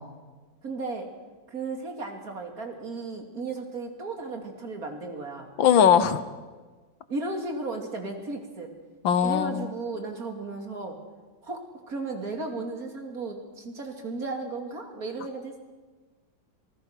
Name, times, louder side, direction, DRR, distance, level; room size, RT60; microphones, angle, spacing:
voice 1, 0.6-1.1 1.5-5.5 7.1-8.7 9.2-11.0 11.4-15.6, right 3 dB, 50° right, 3 dB, 3.0 m, -35 dB
voice 2, 5.6-6.2 9.0-9.7, left 8 dB, 80° left, 13 dB, 1.8 m, -20 dB
26.5 x 20.0 x 5.9 m, 1.3 s
omnidirectional pair, 2.1 m